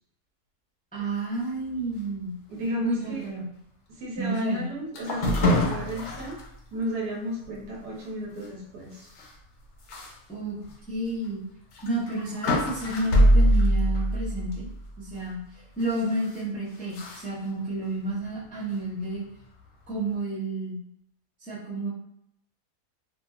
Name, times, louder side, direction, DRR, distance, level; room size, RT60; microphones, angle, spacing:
voice 1, 0.9-2.3 2.8-3.4 4.2-4.7 10.3-10.6 10.9-11.4 11.8-14.7 15.0-15.4 15.8-19.2 19.9-20.8 21.5-21.9, right 2 dB, 10° left, -8 dB, 0.5 m, -30 dB
voice 2, 2.5-3.3 3.9-6.4 6.7-9.1, equal, 80° right, -3 dB, 1.4 m, -33 dB
sound 1, 4.9-6.5 6.9-7.0 7.4-7.6 9.2-9.3 9.9-10.1 10.6-10.7 11.7-14.9 15.8-16.4 16.9-17.2, equal, 65° left, 0.7 m, -24 dB
2.7 x 2.6 x 2.3 m, 0.75 s
omnidirectional pair, 1.6 m